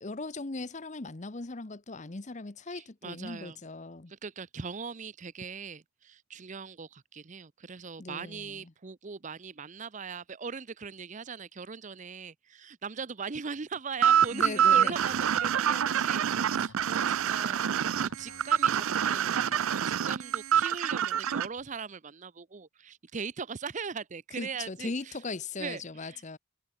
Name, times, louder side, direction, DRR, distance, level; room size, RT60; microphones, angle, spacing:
voice 1, 0.0-4.1 8.0-8.7 14.3-15.0 24.4-26.4, left 3 dB, 35° left, 0.9 m, -38 dB
voice 2, 2.7-3.6 4.1-17.6 18.0-25.2 25.6-26.4, right 5 dB, 35° right, 0.6 m, -40 dB
sound 1, 14.0-21.5, right 9 dB, 85° right, 0.5 m, -26 dB
sound 2, 14.2-19.8, left 3 dB, 70° left, 1.5 m, -53 dB
head